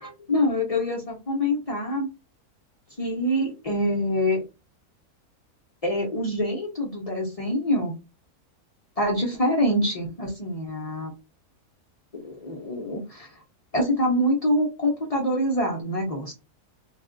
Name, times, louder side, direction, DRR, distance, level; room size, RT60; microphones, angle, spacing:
voice 1, 0.0-2.1 3.0-4.4 5.8-7.9 9.0-11.1 12.1-13.3 13.7-16.3, left 1 dB, 50° left, -1 dB, 0.4 m, -25 dB
2.5 x 2.2 x 3.7 m, 0.28 s
omnidirectional pair, 1.6 m